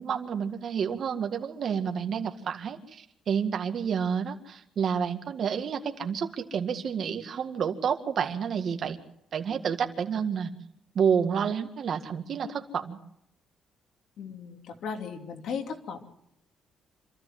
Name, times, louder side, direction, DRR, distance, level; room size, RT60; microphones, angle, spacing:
voice 1, 0.0-9.0 9.3-10.5 11.0-13.0, right 7 dB, 45° right, 5 dB, 1.9 m, -29 dB
voice 2, 14.2-16.0, left 6 dB, 65° left, 4 dB, 2.9 m, -36 dB
26.5 x 13.5 x 7.7 m, 0.77 s
cardioid pair, 150°, 0 cm